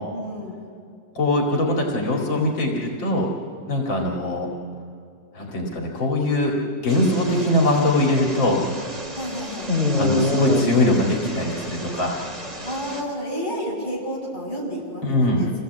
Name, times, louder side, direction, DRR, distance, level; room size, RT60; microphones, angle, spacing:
voice 1, 0.1-0.5 9.1-9.7 12.6-15.5, equal, 25° left, -3 dB, 6.4 m, -30 dB
voice 2, 1.1-3.3 3.7-4.5 5.3-8.6 10.0-12.2 15.0-15.5, left 1 dB, 80° left, -1 dB, 3.0 m, -22 dB
sound 1, 6.9-13.0, left 1 dB, 20° right, 2.5 m, -27 dB
27.0 x 17.0 x 8.1 m, 2.3 s
omnidirectional pair, 2.0 m